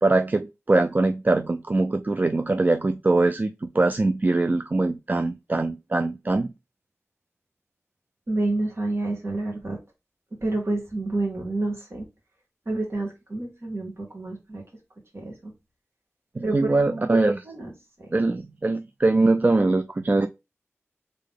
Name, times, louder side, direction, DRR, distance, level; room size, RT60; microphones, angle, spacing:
voice 1, 0.0-6.5 16.4-17.4 18.1-20.3, right 2 dB, 35° right, 0.3 m, -22 dB
voice 2, 8.3-9.8 10.4-12.1 12.7-14.6 15.1-15.5 16.4-17.1 17.4-17.7 18.0-18.1, right 2 dB, 55° right, 2.1 m, -29 dB
3.8 x 3.7 x 3.6 m
wide cardioid pair, 55°, 5 cm